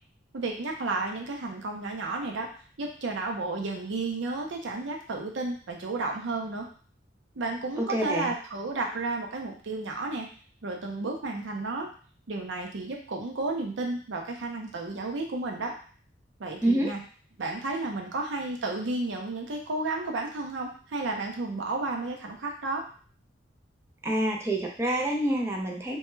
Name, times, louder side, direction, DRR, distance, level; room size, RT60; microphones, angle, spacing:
voice 1, 0.3-2.5 2.8-6.7 7.4-10.3 10.6-11.9 12.3-15.7 16.4-17.0 17.4-22.8, right 3 dB, 75° right, 1 dB, 0.5 m, -32 dB
voice 2, 7.8-8.3 16.6-16.9 24.0-26.0, right 1 dB, 15° right, 0 dB, 0.4 m, -27 dB
2.2 x 2.1 x 3.1 m, 0.42 s
head